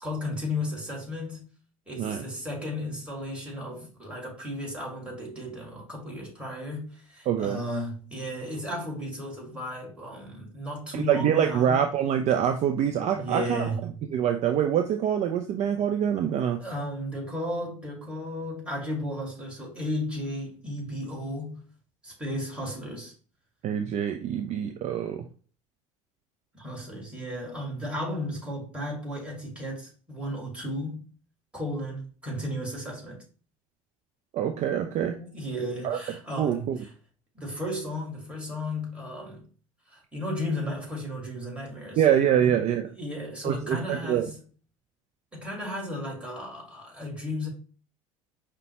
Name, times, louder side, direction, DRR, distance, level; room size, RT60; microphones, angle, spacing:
voice 1, 0.0-1.5 1.9-11.9 13.1-14.0 16.6-21.6 22.0-23.1 26.5-31.0 31.5-33.2 35.2-36.9 37.3-39.5 39.9-42.0 42.4-42.6 42.9-44.4 45.3-47.5, left 1 dB, 5° right, 2.0 m, -34 dB
voice 2, 7.3-7.6 10.9-13.7 14.1-16.6 23.6-25.2 34.3-35.2 35.8-36.0 36.4-36.8 42.0-42.9 43.4-44.3, right 9 dB, 45° right, 0.4 m, -25 dB
5.2 x 2.2 x 2.8 m
hypercardioid pair, 75°, 17 cm